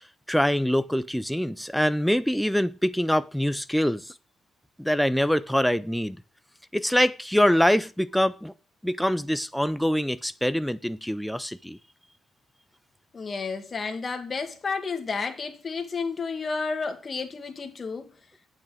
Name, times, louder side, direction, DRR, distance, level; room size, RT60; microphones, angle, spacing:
voice 1, 0.3-4.1 4.8-6.2 6.7-8.5 8.8-11.8, equal, ahead, 0.4 m, -24 dB
voice 2, 13.1-18.1, left 4 dB, 35° left, 1.9 m, -31 dB
9.1 x 6.0 x 6.1 m
cardioid pair, 105°, 0 cm